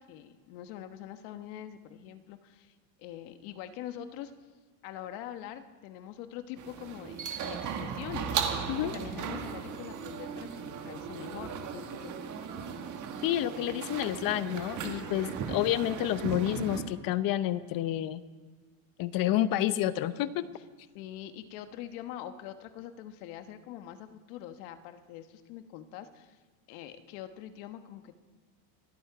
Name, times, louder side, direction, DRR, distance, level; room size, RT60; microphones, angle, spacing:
voice 1, 0.0-4.3 4.8-12.2 15.2-15.5 20.9-26.4 26.7-28.2, left 11 dB, 75° left, 9 dB, 1.3 m, -44 dB
sound 1, 6.6-16.8, right 7 dB, 40° right, 1.5 m, -37 dB
voice 2, 13.2-18.2 19.0-20.5, left 13 dB, 50° left, 15 dB, 0.8 m, -29 dB
26.0 x 8.8 x 4.7 m, 1.4 s
supercardioid pair, 125°, 45 cm